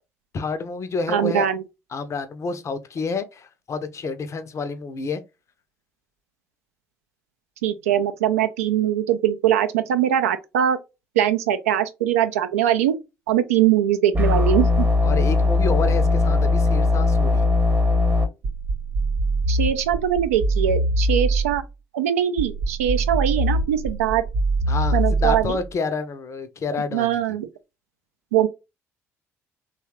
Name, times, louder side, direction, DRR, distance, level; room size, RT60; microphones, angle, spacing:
voice 1, 0.3-1.5 1.9-5.2 15.0-17.5 24.7-27.2, left 4 dB, 40° left, 0.5 m, -29 dB
voice 2, 1.1-1.6 7.6-10.8 11.2-13.0 13.3-14.9 19.5-21.6 21.9-24.2 24.9-25.6 26.9-27.5 28.3-28.5, right 10 dB, 75° right, 0.4 m, -21 dB
sound 1, 14.1-18.3, left 3 dB, 20° right, 0.8 m, -19 dB
sound 2, 18.4-21.7 22.4-25.7, right 2 dB, 60° right, 0.8 m, -23 dB
3.1 x 2.3 x 2.8 m
figure-of-eight pair, 50°, 8 cm